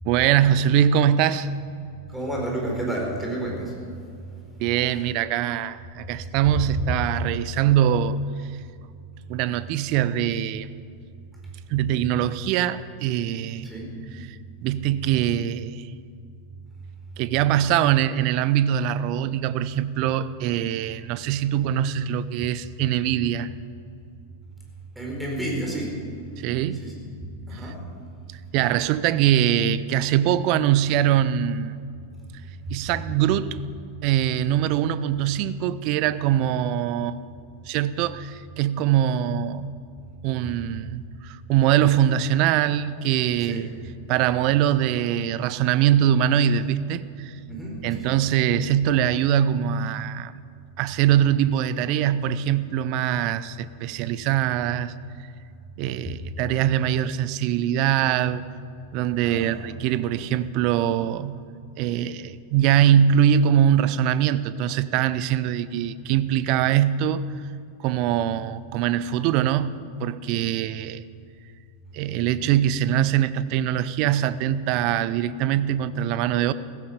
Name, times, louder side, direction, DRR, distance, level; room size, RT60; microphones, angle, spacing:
voice 1, 0.0-1.5 4.6-8.2 9.3-10.7 11.7-13.7 14.3-15.9 17.2-23.5 26.4-26.9 27.5-27.7 28.5-31.8 32.7-33.6 34.0-37.2 37.7-39.7 40.2-43.7 44.1-47.4 47.8-50.3 50.8-54.9 55.8-58.4 58.9-61.4 61.8-67.3 67.8-71.0 71.9-76.5, right 10 dB, 45° right, 16 dB, 0.6 m, -22 dB
voice 2, 2.1-3.8 13.6-13.9 24.9-26.0 26.7-27.0 27.5-27.8 32.7-32.8 43.4-43.6 47.5-48.2 59.2-59.6, right 1 dB, 5° right, -2 dB, 4.4 m, -31 dB
16.5 x 15.5 x 5.2 m, 2.5 s
figure-of-eight pair, 90°, 0 cm